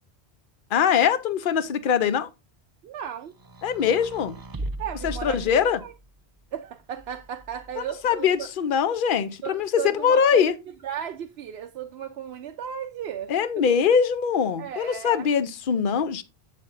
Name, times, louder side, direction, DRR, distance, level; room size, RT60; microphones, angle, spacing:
voice 1, 0.7-2.3 3.6-4.3 5.0-5.8 7.8-10.5 13.3-16.2, left 7 dB, 55° left, 0.8 m, -22 dB
voice 2, 2.8-3.3 4.8-5.4 5.8-5.9 6.5-8.5 9.4-10.5 10.8-13.3 14.6-15.3, right 9 dB, 75° right, 0.9 m, -35 dB
sound 1, 3.3-6.1 7.0-7.9, right 1 dB, 30° right, 0.4 m, -38 dB
7.6 x 7.1 x 2.5 m
omnidirectional pair, 1.1 m